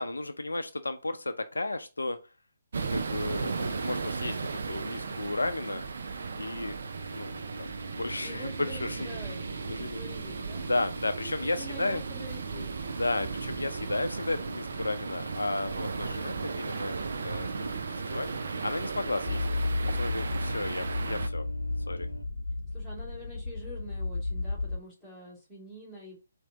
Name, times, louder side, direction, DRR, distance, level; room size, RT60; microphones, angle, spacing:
voice 1, 0.0-2.2 2.9-5.8 6.4-6.8 7.1-9.1 9.7-10.0 10.6-12.0 12.8-16.9 17.2-18.3 18.6-19.4 19.9-21.5 21.9-22.1, left 2 dB, 75° left, 9 dB, 0.4 m, -33 dB
sound 1, 2.7-21.3, right 4 dB, 60° right, 0.5 m, -36 dB
sound 2, 6.9-22.2, right 1 dB, 85° right, 0.8 m, -45 dB
voice 2, 8.2-10.7 11.2-13.0 22.7-26.2, equal, ahead, -9 dB, 2.2 m, -46 dB
sound 3, 19.3-24.8, left 2 dB, 55° left, 0.8 m, -33 dB
4.3 x 2.6 x 3.6 m, 0.30 s
figure-of-eight pair, 140°, 0 cm